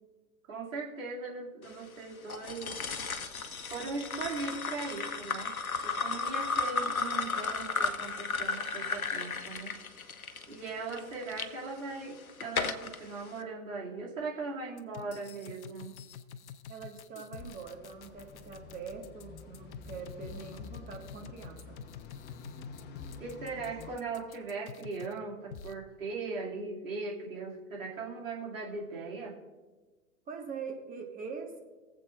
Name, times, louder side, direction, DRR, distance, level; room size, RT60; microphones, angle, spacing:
voice 1, 0.5-2.8 3.7-5.5 5.8-9.8 10.5-15.9 23.2-29.4, right 3 dB, 70° right, -3 dB, 2.5 m, -39 dB
sound 1, 2.3-11.5 12.0-13.0, left 4 dB, 85° left, 0.8 m, -34 dB
voice 2, 10.7-11.2 16.7-21.8 30.3-31.6, right 5 dB, 20° right, 2 dB, 1.6 m, -43 dB
sound 2, 14.8-25.2 25.5-25.7, left 7 dB, 55° left, 0.8 m, -47 dB
sound 3, 17.4-24.0, left 4 dB, 25° left, 1.0 m, -49 dB
22.5 x 7.7 x 2.4 m, 1.2 s
figure-of-eight pair, 100°, 42 cm